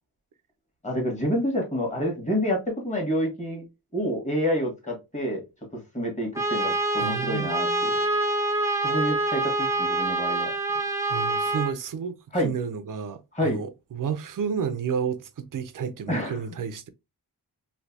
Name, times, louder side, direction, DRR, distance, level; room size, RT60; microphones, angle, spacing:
voice 1, 0.8-3.6 3.9-5.4 5.7-7.9 8.8-10.5 12.3-12.5 13.3-13.6 16.1-16.4, equal, 20° left, 1.4 m, -28 dB
Trumpet, 6.3-11.7, right 2 dB, 10° right, 0.6 m, -26 dB
voice 2, 7.0-8.1 11.1-12.2 12.4-16.9, right 7 dB, 55° right, 0.5 m, -31 dB
3.2 x 2.7 x 2.7 m
wide cardioid pair, 120°, 38 cm